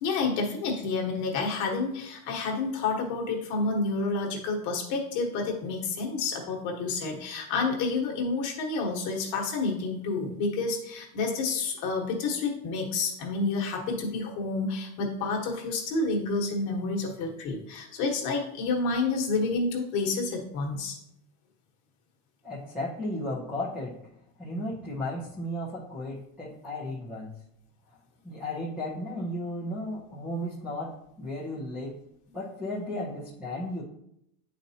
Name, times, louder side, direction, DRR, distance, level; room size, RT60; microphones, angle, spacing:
voice 1, 0.0-21.0, left 3 dB, 40° left, 1 dB, 1.2 m, -29 dB
voice 2, 22.4-23.9 24.4-27.3 28.2-30.9 31.2-32.0 32.3-33.8, left 1 dB, 5° right, -10 dB, 0.5 m, -34 dB
9.4 x 4.1 x 2.8 m, 0.77 s
cardioid pair, 175°, 47 cm